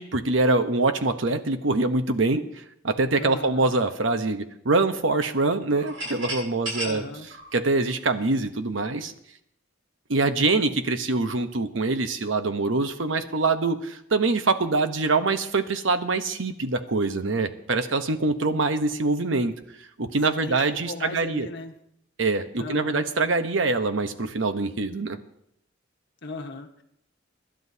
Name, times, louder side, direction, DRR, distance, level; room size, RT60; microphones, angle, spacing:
voice 1, 0.0-7.0 7.5-9.1 10.1-19.5 20.0-21.5 22.2-25.2, right 3 dB, 75° right, 8 dB, 1.0 m, -24 dB
voice 2, 3.2-3.7 6.8-7.3 20.3-21.7 22.6-23.0 26.2-26.8, left 3 dB, 65° left, 4 dB, 1.4 m, -37 dB
sound 1, 5.8-8.5, equal, 90° right, 7.2 m, -35 dB
24.5 x 11.5 x 2.8 m, 0.77 s
head